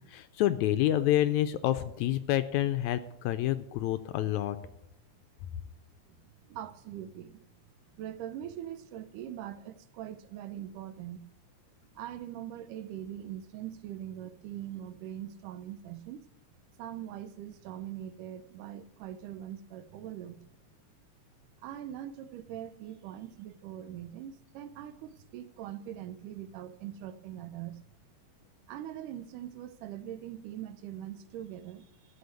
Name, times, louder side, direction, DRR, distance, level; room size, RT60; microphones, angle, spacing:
voice 1, 0.0-4.6, left 13 dB, 80° left, 1.7 m, -28 dB
voice 2, 6.1-7.5 8.0-11.2 12.0-16.2 16.8-20.4 21.6-27.8 28.7-32.2, right 11 dB, 85° right, 2.3 m, -42 dB
13.0 x 6.4 x 8.1 m
omnidirectional pair, 3.7 m